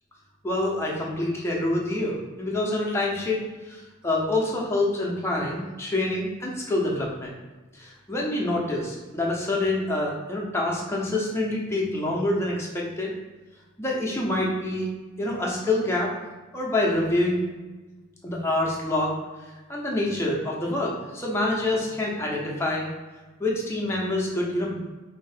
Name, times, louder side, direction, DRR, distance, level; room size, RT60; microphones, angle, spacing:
voice 1, 0.4-3.4 3.7-7.3 7.7-13.1 13.8-14.9 15.2-16.1 16.5-17.4 18.2-19.2 19.7-22.9 23.4-24.8, left 2 dB, 15° left, -3 dB, 0.8 m, -26 dB
4.8 x 2.7 x 3.3 m, 1.2 s
head